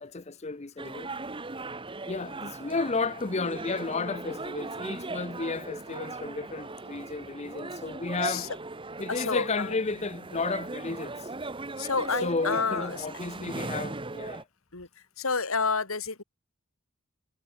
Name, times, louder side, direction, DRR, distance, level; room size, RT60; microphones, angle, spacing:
voice 1, 0.0-1.1 2.1-8.5 9.0-11.3 12.2-14.4, left 3 dB, 30° left, 0.8 m, -33 dB
sound 1, 0.8-14.4, right 3 dB, 25° right, 1.2 m, -38 dB
voice 2, 9.1-9.8 11.8-13.1 14.7-16.2, left 4 dB, 80° left, 2.8 m, -30 dB
head